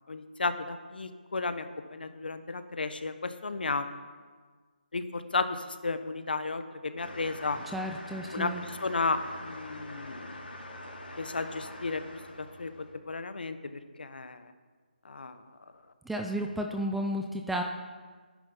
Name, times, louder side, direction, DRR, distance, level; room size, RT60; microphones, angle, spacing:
voice 1, 0.1-1.6 1.9-3.9 4.9-7.6 8.3-10.3 11.2-12.0 12.6-13.6 14.0-14.4 15.0-15.4, left 3 dB, 70° left, 10 dB, 1.2 m, -33 dB
sound 1, 7.0-12.9, left 1 dB, 85° left, 2.9 m, -44 dB
voice 2, 7.7-8.6 16.1-17.6, equal, ahead, 3 dB, 0.4 m, -32 dB
11.5 x 10.0 x 5.7 m, 1.5 s
figure-of-eight pair, 165°, 5 cm